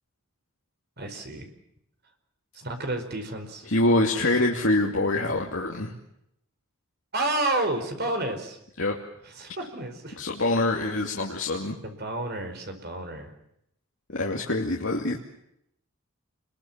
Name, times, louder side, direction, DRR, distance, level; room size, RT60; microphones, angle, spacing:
voice 1, 1.0-1.5 2.5-3.7 7.1-8.6 9.4-10.2 11.8-13.3, right 2 dB, 50° right, 6 dB, 5.0 m, -30 dB
voice 2, 3.7-5.9 8.8-9.0 10.2-11.7 14.1-15.2, left 2 dB, 60° left, 0 dB, 2.7 m, -25 dB
28.5 x 22.0 x 7.5 m, 0.78 s
head